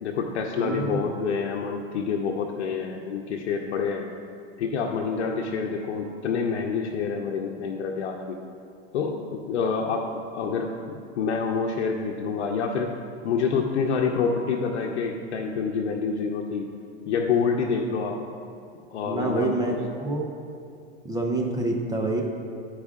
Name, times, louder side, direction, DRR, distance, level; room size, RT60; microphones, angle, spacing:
voice 1, 0.0-4.1 4.6-8.4 8.9-10.0 10.3-12.9 13.2-16.7 17.1-18.2 18.9-19.8, left 5 dB, 85° left, 1 dB, 0.8 m, -27 dB
voice 2, 0.6-1.0 19.1-20.3 21.0-22.2, right 2 dB, 10° right, 0 dB, 0.6 m, -27 dB
13.0 x 4.9 x 3.6 m, 2.4 s
supercardioid pair, 125°, 33 cm